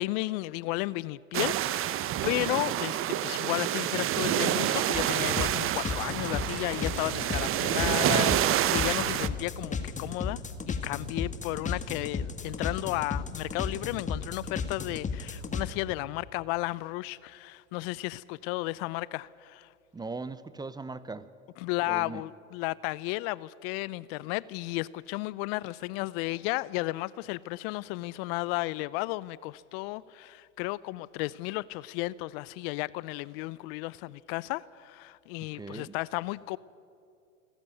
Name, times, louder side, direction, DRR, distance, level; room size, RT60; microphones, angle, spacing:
voice 1, 0.0-10.4 10.7-19.7 21.6-36.6, left 20 dB, 50° left, 0.6 m, -33 dB
sound 1, 1.3-9.3, right 12 dB, 35° right, 0.9 m, -28 dB
sound 2, 4.9-15.7, left 5 dB, 20° left, 1.8 m, -34 dB
voice 2, 19.9-21.3 21.9-22.2 35.5-35.9, right 3 dB, 10° right, 0.7 m, -39 dB
27.5 x 13.5 x 9.3 m
hypercardioid pair, 100°, 38 cm